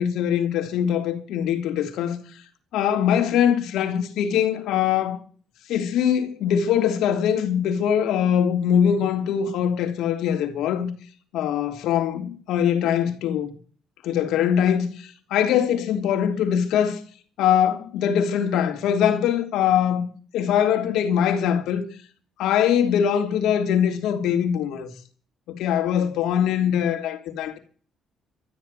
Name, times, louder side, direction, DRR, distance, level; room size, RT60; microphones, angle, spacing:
voice 1, 0.0-2.2 2.7-5.2 5.7-10.9 11.3-13.5 14.0-14.9 15.3-17.0 17.4-20.1 20.3-21.8 22.4-24.9 25.5-27.6, left 9 dB, 75° left, 3.2 m, -22 dB
13.5 x 10.5 x 7.7 m
cardioid pair, 170°, 0 cm